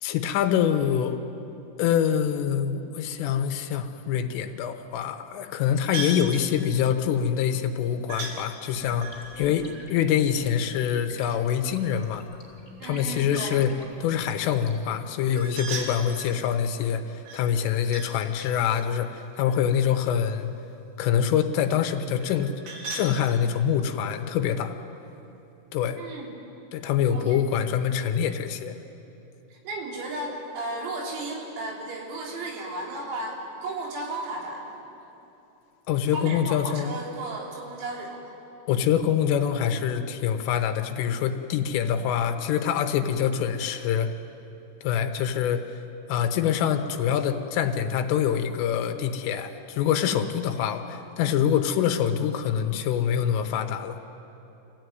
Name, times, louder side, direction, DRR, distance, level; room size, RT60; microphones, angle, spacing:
voice 1, 0.0-1.2 1.8-12.3 12.8-13.7 14.0-20.5 21.0-24.8 25.7-26.0 26.7-28.8 35.9-36.9 38.7-44.1 44.8-45.6 46.1-54.0, left 8 dB, 80° left, 7 dB, 3.5 m, -25 dB
sound 1, 5.9-6.3 8.1-8.4 9.0-10.8 15.3-16.4 17.3-18.1 18.4-20.3 22.2-23.1, right 3 dB, 65° right, 4.8 m, -38 dB
sound 2, 8.7-14.9, left 2 dB, 15° left, 3.9 m, -50 dB
voice 2, 9.4-9.8 12.8-13.6 26.0-26.5 27.1-27.4 29.5-34.8 36.1-38.3, right 2 dB, 85° right, -2 dB, 6.1 m, -35 dB
26.0 x 16.5 x 9.3 m, 2.9 s
omnidirectional pair, 5.9 m